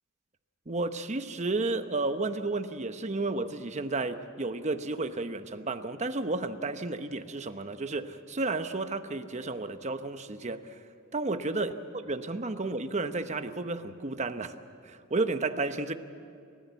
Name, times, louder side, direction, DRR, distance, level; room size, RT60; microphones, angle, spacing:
voice 1, 0.7-10.8 11.1-11.7 12.0-14.6 14.8-15.9, right 3 dB, 35° right, 9 dB, 1.0 m, -32 dB
29.5 x 14.5 x 8.2 m, 2.4 s
head